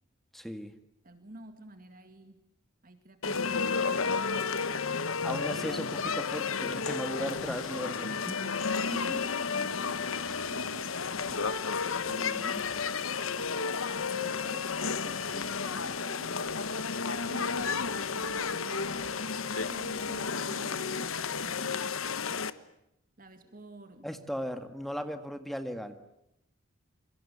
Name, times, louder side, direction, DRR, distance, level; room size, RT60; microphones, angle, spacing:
voice 1, 0.3-0.7 5.2-8.4 24.0-26.0, equal, ahead, 8 dB, 1.8 m, -37 dB
voice 2, 1.0-2.4 2.8-5.1 8.8-13.8 14.2-16.4 17.3-22.0 23.2-24.1, right 1 dB, 40° right, 8 dB, 2.2 m, -50 dB
sound 1, 3.2-22.5, left 5 dB, 80° left, 1.3 m, -32 dB
27.5 x 24.5 x 8.6 m, 0.81 s
head